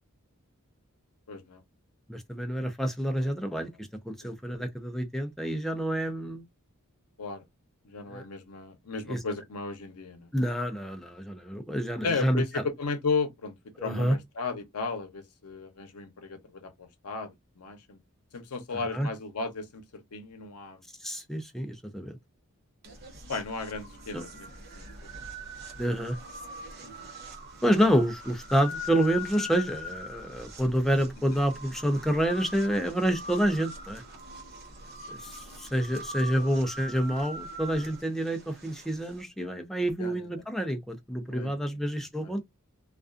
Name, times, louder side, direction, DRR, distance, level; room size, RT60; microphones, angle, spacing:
voice 1, 1.3-1.6 3.2-3.6 4.2-4.7 7.2-7.4 7.8-10.3 12.0-18.0 18.3-20.8 23.3-24.9 26.8-27.1 31.3-31.4 36.4-36.5 40.0-40.3 41.3-41.6 42.0-42.4, left 4 dB, 80° left, 0.7 m, -35 dB
voice 2, 2.1-6.4 8.1-8.2 9.1-9.2 10.3-12.4 13.8-14.2 18.7-19.1 21.0-22.2 24.1-24.2 25.8-26.2 27.6-34.0 35.1-42.4, right 1 dB, ahead, 0.4 m, -28 dB
sound 1, 22.8-39.2, left 1 dB, 45° right, 0.7 m, -42 dB
2.4 x 2.3 x 2.4 m
head